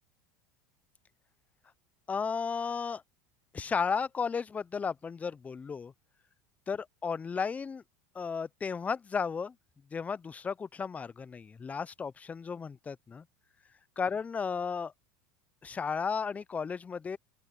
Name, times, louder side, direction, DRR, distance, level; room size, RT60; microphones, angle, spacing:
voice 1, 2.1-3.0 3.5-5.9 6.7-7.8 8.1-9.5 9.9-13.2 14.0-14.9 15.6-17.2, left 5 dB, 15° left, 0.4 m, -34 dB
open air
supercardioid pair, 120°, 8 cm